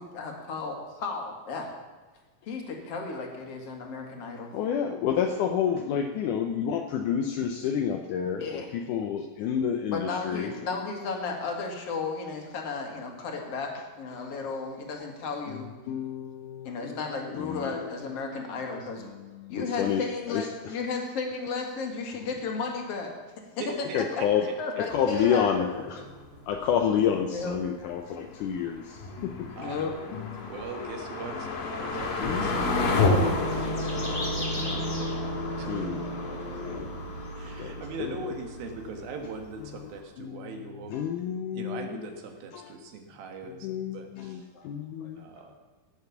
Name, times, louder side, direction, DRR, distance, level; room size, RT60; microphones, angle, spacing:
voice 1, 0.0-1.7 2.4-4.5 8.4-8.7 9.9-13.7 14.0-15.7 16.6-19.1 19.5-23.1 24.1-26.0 27.3-27.5 29.6-29.9 44.5-44.7 45.0-45.1, left 4 dB, 45° left, 1 dB, 2.4 m, -34 dB
voice 2, 4.5-10.5 15.5-18.4 19.1-20.0 20.3-20.8 23.9-24.5 24.8-26.0 26.5-29.7 30.1-30.5 32.2-33.7 35.6-36.1 36.6-37.0 37.6-38.2 40.2-42.1 42.5-42.7 43.6-45.3, left 8 dB, 80° left, 4 dB, 1.8 m, -30 dB
voice 3, 23.6-24.3 29.5-29.8 30.5-37.0 37.3-40.9 41.5-44.5 45.2-45.6, right 3 dB, 70° right, 3 dB, 3.2 m, -41 dB
sound 1, 24.9-39.1 39.4-39.5 39.9-40.0, left 3 dB, 65° left, 3.4 m, -32 dB
sound 2, 31.5-37.6, left 1 dB, 15° left, 2.0 m, -42 dB
sound 3, 32.2-39.8, right 2 dB, 20° right, 1.7 m, -36 dB
17.5 x 6.8 x 7.0 m, 1.3 s
omnidirectional pair, 4.6 m